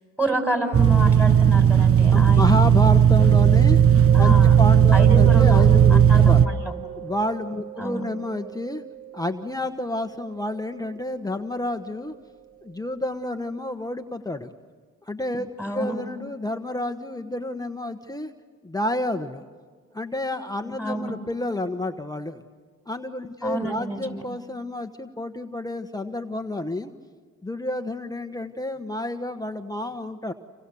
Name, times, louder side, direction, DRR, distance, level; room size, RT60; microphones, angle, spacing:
voice 1, 0.2-2.5 4.1-4.6 4.9-5.6 5.9-6.7 7.8-8.0 15.6-15.9 20.8-21.1 23.4-24.2, right 1 dB, 5° right, 4 dB, 6.0 m, -28 dB
sound 1, 0.7-6.5, right 8 dB, 45° right, 0.9 m, -15 dB
voice 2, 2.1-3.8 4.2-6.5 7.0-8.8 9.1-12.1 12.6-14.5 15.0-18.3 18.6-19.4 19.9-22.4 22.9-26.9 27.4-30.3, left 1 dB, 10° left, 6 dB, 1.2 m, -29 dB
Mallet percussion, 3.2-12.8, right 14 dB, 30° right, 1.9 m, -36 dB
29.5 x 27.5 x 7.0 m, 1.5 s
cardioid pair, 65°, 30 cm